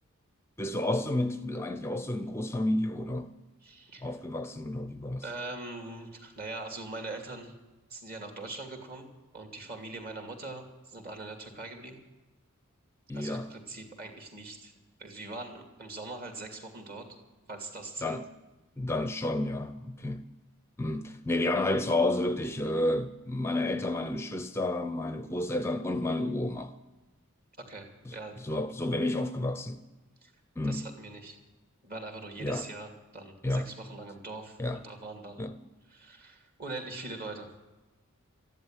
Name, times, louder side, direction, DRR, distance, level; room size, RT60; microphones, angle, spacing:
voice 1, 0.6-3.3 4.0-5.2 13.1-13.5 18.0-18.2 18.8-20.2 20.8-26.7 28.1-29.8 30.6-30.9 32.4-32.6 33.4-33.7 34.6-34.8 35.4-35.5, left 1 dB, 10° left, 0.5 m, -31 dB
voice 2, 3.6-4.1 5.2-7.5 7.9-9.1 9.3-12.0 13.1-14.7 15.0-17.1 17.5-18.2 27.6-28.4 30.2-30.3 30.6-31.4 31.8-35.4 35.9-37.5, right 2 dB, 45° right, 2.7 m, -42 dB
14.0 x 11.0 x 9.0 m
head